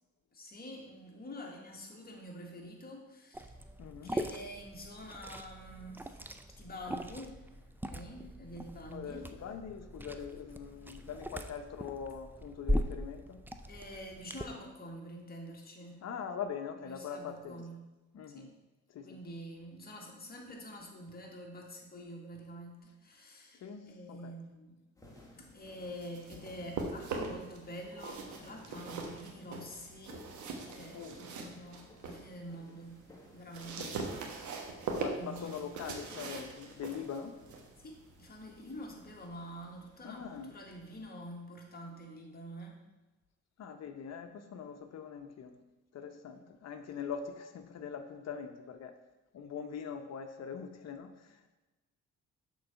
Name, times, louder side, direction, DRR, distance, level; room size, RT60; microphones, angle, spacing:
voice 1, 0.3-3.6 4.0-6.3 6.6-7.6 7.9-9.3 13.7-16.0 16.8-17.8 18.3-18.5 19.0-24.8 25.3-30.3 30.7-33.0 33.3-34.0 35.1-35.6 37.8-42.8 46.1-46.5, equal, 30° left, 0 dB, 1.7 m, -47 dB
Liquid, 3.3-14.4, equal, 5° right, 0.4 m, -40 dB
voice 2, 3.8-4.1 8.9-13.4 16.0-17.6 18.1-18.5 18.9-19.2 23.6-24.3 30.9-31.2 33.8-33.9 35.0-37.3 40.0-40.5 43.6-45.5 45.9-48.9 49.3-51.4, left 7 dB, 60° left, 7 dB, 0.8 m, -42 dB
sound 1, 25.0-41.1, left 1 dB, 10° left, 1.6 m, -59 dB
sound 2, 25.7-27.6 27.9-32.3 32.7-39.3, right 4 dB, 75° right, 1.2 m, -41 dB
6.6 x 4.0 x 5.7 m, 1.1 s
cardioid pair, 90°, 30 cm